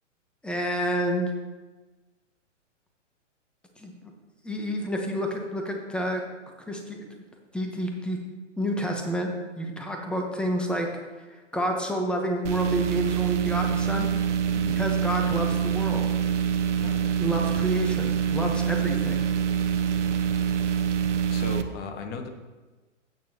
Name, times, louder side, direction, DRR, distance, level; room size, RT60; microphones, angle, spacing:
voice 1, 0.4-1.3 3.8-4.1 4.4-6.2 6.7-7.0 7.5-8.2 8.6-10.9 11.5-14.1 14.7-16.1 17.2-19.3, equal, 5° left, 2 dB, 1.2 m, -29 dB
sound 1, 12.4-21.6, right 8 dB, 70° right, 1.0 m, -25 dB
voice 2, 16.8-17.1 21.3-22.3, left 4 dB, 25° left, 6 dB, 1.2 m, -37 dB
13.5 x 8.9 x 3.0 m, 1.3 s
hypercardioid pair, 120°, 37 cm